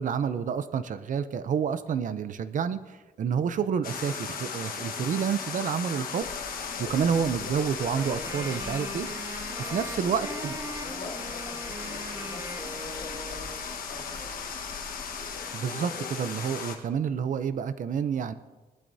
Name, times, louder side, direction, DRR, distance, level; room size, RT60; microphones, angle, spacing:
voice 1, 0.0-6.3 6.8-9.1 9.7-10.6 15.5-18.3, right 7 dB, 60° right, 13 dB, 0.6 m, -29 dB
sound 1, 3.8-16.8, left 6 dB, 75° left, 1.4 m, -36 dB
sound 2, 6.2-15.4, left 4 dB, 90° left, 1.8 m, -46 dB
Wind instrument woodwind instrument, 7.8-13.7, right 1 dB, 20° right, 1.3 m, -41 dB
voice 2, 9.6-10.2 10.6-14.3, left 3 dB, 45° left, -1 dB, 2.4 m, -46 dB
19.5 x 12.0 x 2.7 m, 1.2 s
wide cardioid pair, 140°, 15 cm